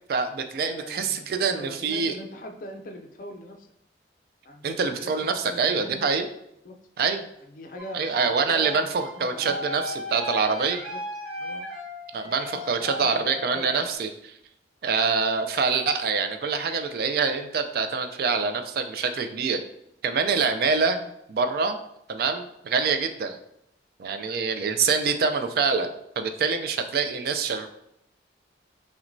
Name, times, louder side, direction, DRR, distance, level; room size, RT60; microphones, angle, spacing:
voice 1, 0.1-2.2 4.6-6.3 7.0-7.2 7.9-10.8 12.1-14.3 14.8-19.6 20.0-21.8 22.1-23.4 24.0-25.9 26.2-27.7, right 5 dB, 55° right, 8 dB, 0.3 m, -25 dB
voice 2, 0.6-1.3 1.5-3.7 4.4-6.0 6.6-6.8 7.5-8.9 9.1-9.6 10.9-11.0 11.4-11.7 12.4-13.7, left 1 dB, 45° left, 5 dB, 0.4 m, -41 dB
sound 1, 7.8-14.0, equal, ahead, 1.2 m, -37 dB
5.8 x 2.2 x 2.6 m, 0.78 s
head